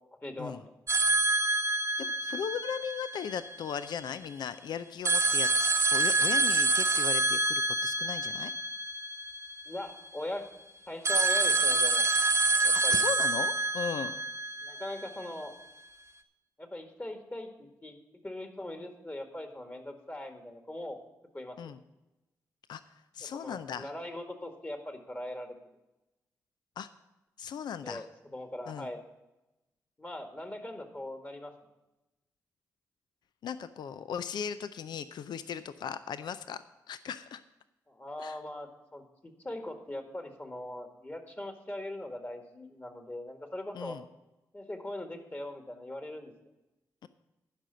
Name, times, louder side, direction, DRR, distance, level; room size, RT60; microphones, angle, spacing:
voice 1, 0.2-0.7 9.7-10.4 10.9-12.1 12.6-13.0 14.6-15.5 16.6-18.0 18.2-21.0 21.3-21.7 23.2-25.6 27.8-28.1 28.3-29.0 30.0-31.5 37.9-44.0 44.5-46.3, left 1 dB, 25° left, 6 dB, 1.9 m, -40 dB
sound 1, 0.9-3.8 5.0-10.0 11.1-15.2, right 2 dB, 40° right, 0.9 m, -27 dB
voice 2, 2.0-5.5 5.9-8.5 12.9-14.1 21.6-21.8 22.7-23.9 26.8-26.9 27.4-28.0 28.7-28.9 33.4-37.4 38.2-38.4 43.7-44.0, left 7 dB, 70° left, 13 dB, 0.4 m, -37 dB
11.5 x 5.1 x 8.1 m, 0.99 s
supercardioid pair, 45°, 8 cm